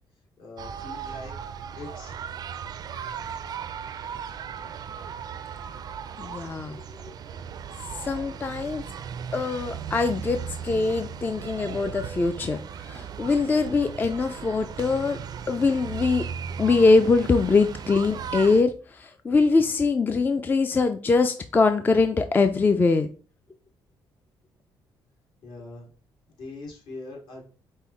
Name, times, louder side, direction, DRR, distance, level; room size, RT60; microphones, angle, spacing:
voice 1, 0.4-1.3 1.7-2.5 2.9-4.1 6.8-6.9 25.4-25.9 26.3-27.4, left 2 dB, 65° left, -1 dB, 1.9 m, -43 dB
sound 1, 0.6-18.6, right 7 dB, 50° right, 0.4 m, -37 dB
voice 2, 6.2-6.8 8.0-8.8 9.3-15.2 15.5-16.2 16.6-23.1, left 4 dB, 20° left, 8 dB, 0.3 m, -23 dB
5.4 x 2.1 x 4.2 m, 0.40 s
cardioid pair, 105°, 9 cm